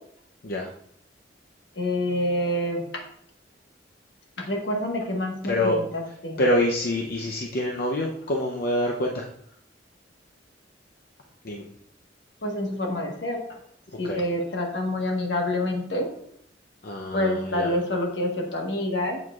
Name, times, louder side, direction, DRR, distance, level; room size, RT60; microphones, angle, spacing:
voice 1, 1.7-3.0 4.4-6.4 12.4-13.6 14.0-16.1 17.1-19.2, left 1 dB, 70° left, 1 dB, 1.4 m, -27 dB
voice 2, 5.5-5.8 6.4-9.3 11.4-11.6 14.0-14.2 16.8-17.7, left 1 dB, 55° left, -1 dB, 0.7 m, -26 dB
7.9 x 7.2 x 2.4 m, 0.69 s
head